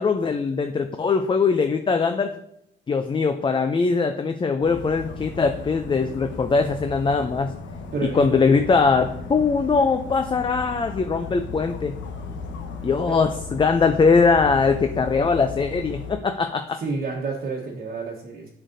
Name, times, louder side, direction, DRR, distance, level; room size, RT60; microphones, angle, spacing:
voice 1, 0.0-2.3 2.9-7.5 8.0-12.0 12.8-16.8, left 4 dB, 25° left, 7 dB, 0.5 m, -21 dB
Dog, 4.6-16.1, left 4 dB, 70° left, 1.0 m, -36 dB
voice 2, 7.9-8.2 13.1-13.2 16.8-18.5, right 4 dB, 45° right, -3 dB, 1.2 m, -29 dB
7.5 x 6.4 x 2.7 m, 0.77 s
cardioid pair, 90°, 20 cm